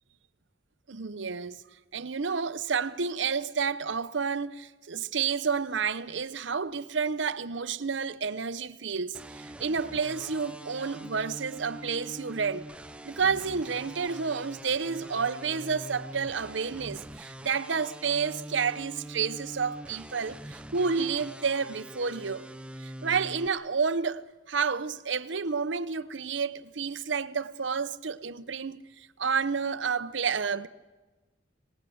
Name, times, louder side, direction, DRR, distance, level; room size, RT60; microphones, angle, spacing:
voice 1, 0.9-1.6 1.9-12.7 13.0-22.5 22.8-30.7, right 5 dB, 65° right, 0.8 m, -30 dB
sound 1, 9.1-23.5, right 1 dB, 5° right, 0.7 m, -44 dB
26.0 x 19.0 x 7.9 m
head